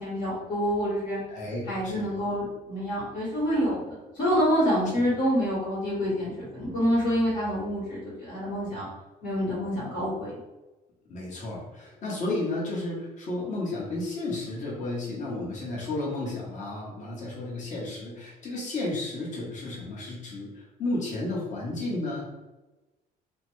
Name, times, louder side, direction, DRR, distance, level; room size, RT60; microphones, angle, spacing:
voice 1, 0.0-1.2 1.7-8.8 9.2-10.4, equal, 60° left, -8 dB, 1.4 m, -27 dB
voice 2, 1.3-2.3 11.1-22.3, left 2 dB, 45° left, -4 dB, 1.1 m, -33 dB
2.8 x 2.1 x 3.1 m, 1.1 s
cardioid pair, 110°, 17 cm